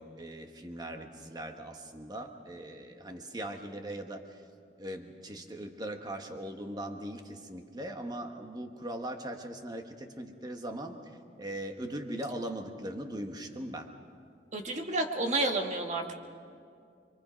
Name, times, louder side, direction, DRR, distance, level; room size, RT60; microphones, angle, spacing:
voice 1, 0.0-4.4 4.8-11.0 11.4-13.9, right 1 dB, 20° right, 5 dB, 1.4 m, -40 dB
voice 2, 14.5-16.1, right 2 dB, 40° right, 3 dB, 1.7 m, -30 dB
26.5 x 23.5 x 5.2 m, 2.3 s
head